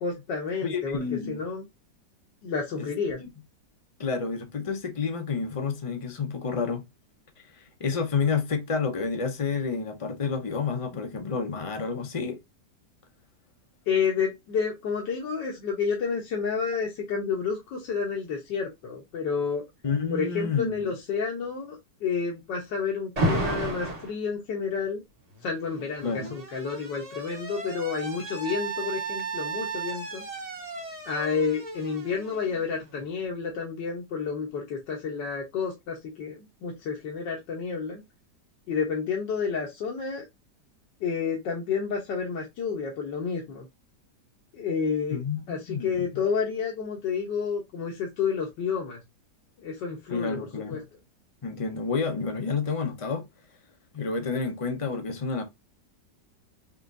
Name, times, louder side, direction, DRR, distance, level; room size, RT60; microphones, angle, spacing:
voice 1, 0.0-1.0 1.3-1.7 2.4-3.2 13.9-19.6 20.1-25.0 25.4-30.2 31.1-38.0 38.7-40.3 41.0-43.7 44.5-45.2 45.5-49.0 49.6-50.8, left 5 dB, 80° left, 1.7 m, -30 dB
voice 2, 0.6-1.5 2.8-2.9 3.2-3.3 4.0-6.8 7.5-12.4 19.8-20.9 26.0-26.3 45.1-46.2 50.1-50.8 51.4-53.2 53.9-55.4, left 5 dB, 40° left, 0.4 m, -30 dB
Alarm, 23.2-24.1 25.3-33.0, right 2 dB, 30° right, 0.9 m, -33 dB
4.9 x 3.0 x 2.5 m
omnidirectional pair, 1.9 m